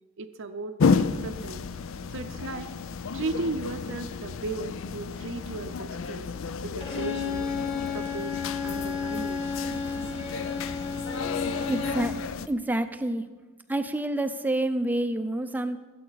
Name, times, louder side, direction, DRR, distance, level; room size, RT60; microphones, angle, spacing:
voice 1, 0.2-0.8 1.2-1.7 2.1-2.7 3.1-6.3 6.6-7.5 7.9-8.4 8.6-9.4, right 3 dB, 60° right, 7 dB, 0.6 m, -35 dB
sound 1, 0.8-12.5, left 5 dB, 60° left, 0.5 m, -31 dB
Bowed string instrument, 6.8-12.3, left 5 dB, 25° left, 2.6 m, -32 dB
voice 2, 11.7-12.2 12.5-13.3 13.7-15.8, right 1 dB, 10° right, 10 dB, 0.5 m, -28 dB
21.5 x 8.5 x 4.0 m, 1.3 s
head